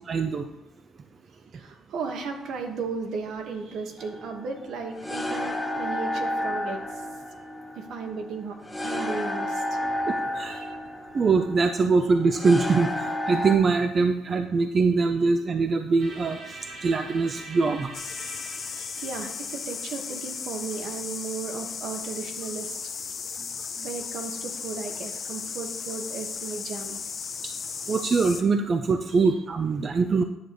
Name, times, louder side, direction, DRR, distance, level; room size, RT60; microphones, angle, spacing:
voice 1, 0.1-0.4 10.1-10.6 11.1-12.9 13.3-16.4 16.8-17.9 27.9-30.2, right 4 dB, 35° right, 7 dB, 0.5 m, -23 dB
voice 2, 1.5-7.0 7.7-8.5 8.8-9.8 10.4-10.8 18.7-22.8 23.8-27.0 29.1-29.2, right 4 dB, 70° right, 4 dB, 1.3 m, -35 dB
sound 1, 4.0-13.6, left 1 dB, 5° left, 1.1 m, -31 dB
sound 2, 16.0-21.9, right 2 dB, 55° right, 2.5 m, -45 dB
sound 3, 17.9-28.4, left 6 dB, 45° left, 0.8 m, -35 dB
9.8 x 6.7 x 3.0 m, 0.90 s
cardioid pair, 105°, 0 cm